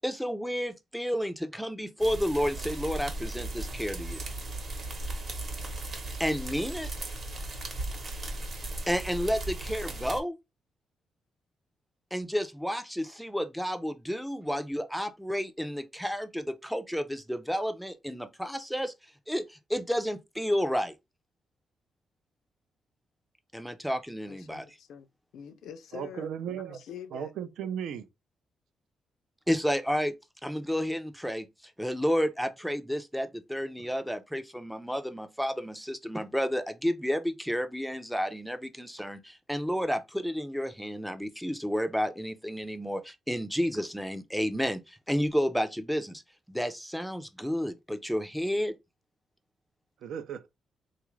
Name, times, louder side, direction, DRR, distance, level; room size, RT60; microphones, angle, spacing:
voice 1, 0.0-4.2 6.2-6.9 8.9-10.3 12.1-18.9 19.3-20.9 23.5-24.6 29.5-30.1 30.4-31.5 31.8-46.2 46.5-48.7, equal, ahead, 0.4 m, -31 dB
sound 1, 2.0-10.2, right 2 dB, 40° right, 0.8 m, -37 dB
voice 2, 24.2-25.1 25.3-27.3, left 8 dB, 75° left, 0.5 m, -45 dB
voice 3, 25.9-26.8 27.1-28.1 50.0-50.5, right 8 dB, 80° right, 0.4 m, -36 dB
3.7 x 2.4 x 3.0 m
cardioid pair, 160°, 0 cm